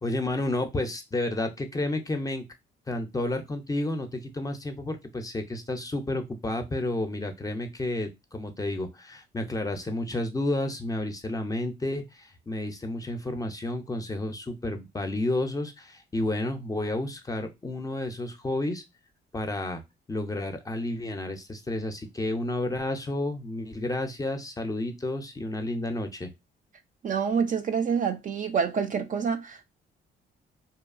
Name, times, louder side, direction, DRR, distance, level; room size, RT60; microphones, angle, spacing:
voice 1, 0.0-2.4 2.9-18.8 19.3-19.8 20.1-26.3, left 2 dB, 20° left, 0.4 m, -31 dB
voice 2, 27.0-29.6, right 6 dB, 40° right, 0.4 m, -27 dB
2.8 x 2.3 x 2.3 m
cardioid pair, 90°, 20 cm